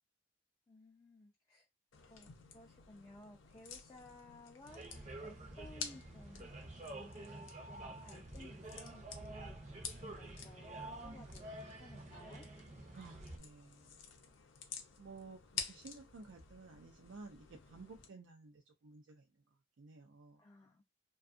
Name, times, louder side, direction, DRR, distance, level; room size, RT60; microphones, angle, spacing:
voice 1, 0.7-1.7 2.1-9.7 10.0-12.4 20.4-20.8, left 2 dB, 20° left, 0.4 m, -58 dB
sound 1, 1.9-18.1, left 6 dB, 90° left, 0.6 m, -51 dB
sound 2, 4.7-13.4, right 2 dB, 35° right, 0.6 m, -49 dB
voice 2, 12.9-14.0 15.0-15.4 15.7-19.4 19.8-20.4, right 3 dB, 80° right, 0.4 m, -54 dB
2.5 x 2.3 x 2.4 m
head